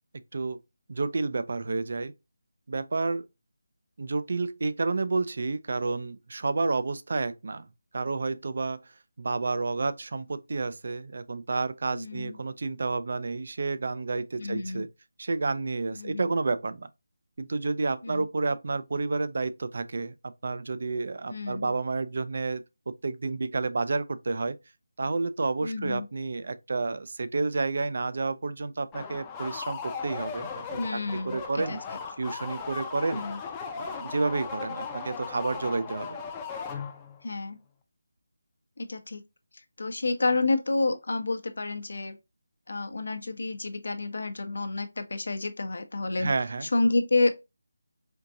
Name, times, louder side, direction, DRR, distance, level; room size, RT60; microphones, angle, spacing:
voice 1, 0.9-2.1 2.7-3.3 4.0-7.7 7.9-8.8 9.2-14.9 15.2-16.9 17.4-24.6 25.0-31.0 31.3-31.8 32.2-33.2 33.7-36.2 46.2-46.7, right 3 dB, 55° right, 0.4 m, -30 dB
voice 2, 11.9-12.4 14.4-14.8 15.9-16.2 18.0-18.3 21.3-21.7 25.6-26.1 30.8-31.8 33.1-33.4 37.2-37.6 38.8-39.2 39.8-42.2 42.7-46.3 46.6-47.3, left 3 dB, 70° left, 0.7 m, -29 dB
sound 1, 28.9-37.2, left 5 dB, 15° left, 0.5 m, -37 dB
4.5 x 2.6 x 2.4 m
figure-of-eight pair, 165°, 0 cm